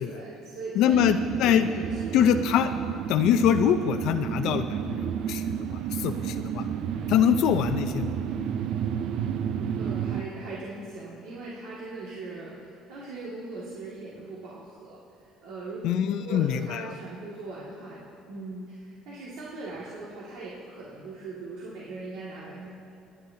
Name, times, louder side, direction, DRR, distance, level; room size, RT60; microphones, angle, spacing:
voice 1, 0.1-1.1 1.4-2.2 9.8-22.7, right 3 dB, 80° right, -6 dB, 2.1 m, -40 dB
voice 2, 0.8-1.7 2.1-2.7 3.1-5.5 5.7-6.6 7.1-8.1 15.8-16.9, left 9 dB, 70° left, 8 dB, 0.5 m, -24 dB
sound 1, 0.9-10.2, right 8 dB, 60° right, 0.6 m, -31 dB
28.0 x 9.7 x 2.8 m, 2.6 s
cardioid pair, 135°, 0 cm